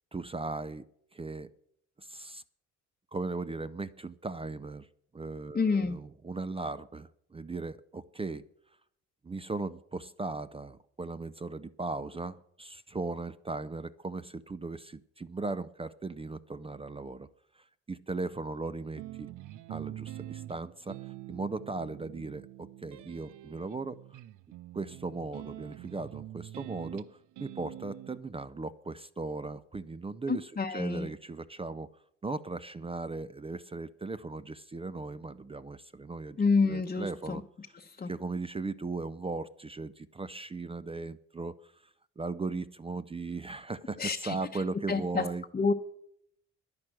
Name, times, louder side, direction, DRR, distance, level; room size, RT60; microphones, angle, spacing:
voice 1, 0.1-0.8 1.1-1.5 2.0-2.4 3.1-4.9 5.1-8.4 9.2-17.3 17.6-19.3 19.7-24.2 24.7-31.9 32.2-36.4 36.6-37.4 38.1-41.8 42.2-45.4, right 3 dB, 20° right, 13 dB, 0.5 m, -38 dB
voice 2, 5.5-6.0 30.3-31.1 36.4-37.4 37.7-38.1 44.0-45.3 45.5-45.7, left 4 dB, 30° left, 2 dB, 0.9 m, -29 dB
sound 1, 19.0-28.2, right 14 dB, 85° right, 0.6 m, -45 dB
10.5 x 10.5 x 7.6 m, 0.70 s
cardioid pair, 90°, 30 cm